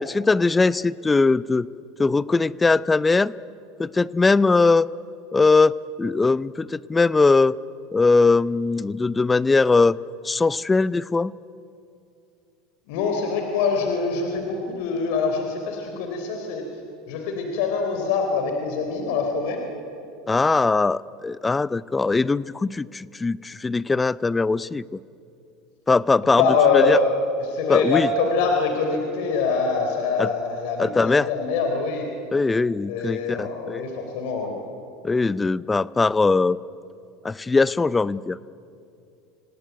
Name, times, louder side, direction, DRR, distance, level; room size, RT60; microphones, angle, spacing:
voice 1, 0.0-1.7 2.0-3.3 3.8-4.9 5.3-7.6 7.9-10.0 10.2-11.3 20.3-25.0 25.9-26.4 26.7-27.0 27.7-28.1 30.2-30.3 30.8-31.3 32.3-33.8 35.0-36.6 37.2-38.4, left 3 dB, 15° left, 20 dB, 0.6 m, -20 dB
voice 2, 12.9-16.6 17.1-19.6 26.4-27.1 27.4-32.1 32.9-34.5, left 4 dB, 70° left, 3 dB, 3.7 m, -24 dB
26.0 x 18.0 x 9.4 m, 2.6 s
supercardioid pair, 100°, 0 cm